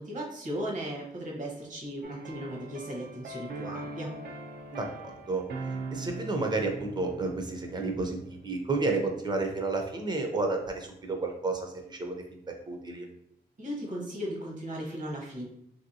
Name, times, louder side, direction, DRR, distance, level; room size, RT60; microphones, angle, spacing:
voice 1, 0.0-4.1 13.6-15.4, equal, 50° right, -1 dB, 0.9 m, -36 dB
sound 1, 2.0-8.6 8.9-9.1, right 3 dB, 80° right, 0.4 m, -41 dB
voice 2, 4.7-5.4 5.9-12.2 12.7-13.1, right 3 dB, 25° right, 2 dB, 0.5 m, -31 dB
3.0 x 2.7 x 2.6 m, 0.73 s
wide cardioid pair, 155°, 16 cm